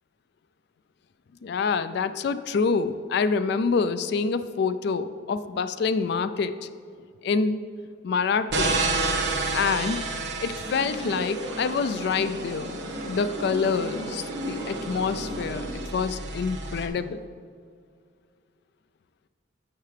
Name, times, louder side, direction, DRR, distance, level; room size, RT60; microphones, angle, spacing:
voice 1, 1.4-6.7 7.2-7.6 8.0-9.1 9.5-10.0 10.4-12.8 13.1-17.2, left 5 dB, 55° left, 12 dB, 0.3 m, -26 dB
sound 1, 8.5-16.9, right 3 dB, 55° right, 0.9 m, -31 dB
sound 2, 10.6-15.7, equal, 85° right, 1.7 m, -35 dB
10.5 x 6.6 x 3.3 m, 2.2 s
head